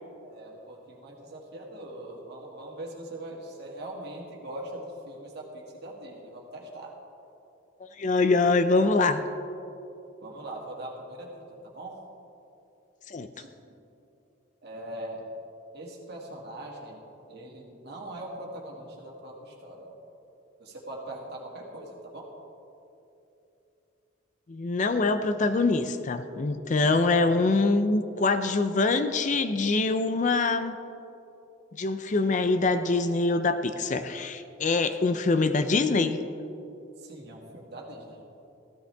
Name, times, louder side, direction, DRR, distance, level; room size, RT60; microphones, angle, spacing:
voice 1, 0.2-7.0 10.2-12.0 13.3-13.5 14.6-15.3 15.7-17.0 17.3-20.0 20.6-22.3 37.0-38.2, right 1 dB, 55° right, -2 dB, 2.1 m, -41 dB
voice 2, 8.0-9.2 13.1-13.3 24.5-30.8 31.8-36.2, left 3 dB, 40° left, 10 dB, 0.4 m, -24 dB
15.5 x 13.0 x 3.4 m, 2.8 s
head